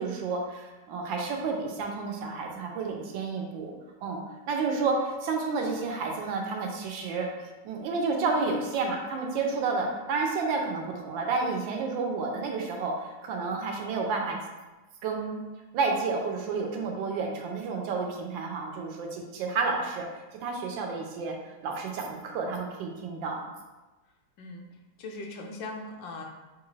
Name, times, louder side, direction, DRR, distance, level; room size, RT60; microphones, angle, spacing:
voice 1, 0.0-3.7 4.0-7.3 7.6-14.4 15.0-15.4 15.7-20.1 20.4-21.3 21.6-23.4, right 4 dB, 90° right, 1 dB, 1.4 m, -30 dB
voice 2, 24.4-24.7 25.0-26.2, left 2 dB, 85° left, 2 dB, 1.4 m, -39 dB
5.8 x 2.4 x 3.1 m, 1.2 s
omnidirectional pair, 2.0 m